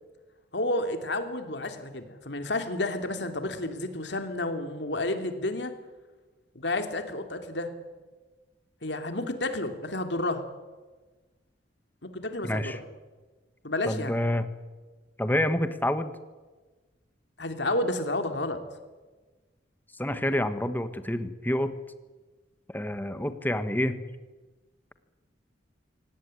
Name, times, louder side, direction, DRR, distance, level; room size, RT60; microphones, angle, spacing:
voice 1, 0.5-5.7 6.5-7.7 8.8-10.4 12.0-12.8 13.6-14.2 17.4-18.6, left 2 dB, 65° left, 7 dB, 2.9 m, -31 dB
voice 2, 12.4-12.8 13.8-14.5 15.2-16.1 20.0-21.8 22.7-24.0, left 1 dB, 10° left, 10 dB, 1.4 m, -28 dB
23.5 x 18.0 x 9.8 m, 1.3 s
head